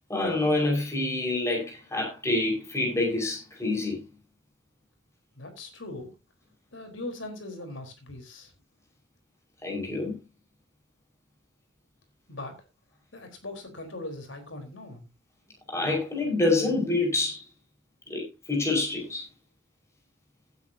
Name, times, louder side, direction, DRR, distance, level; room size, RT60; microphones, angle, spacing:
voice 1, 0.1-4.0 9.6-10.1 15.7-17.4 18.1-18.2 18.5-19.2, left 2 dB, 15° left, 5.4 m, -27 dB
voice 2, 5.3-6.1 6.7-8.5 12.3-12.5 13.1-15.1, left 2 dB, 80° left, 4.3 m, -40 dB
17.0 x 9.5 x 2.9 m
head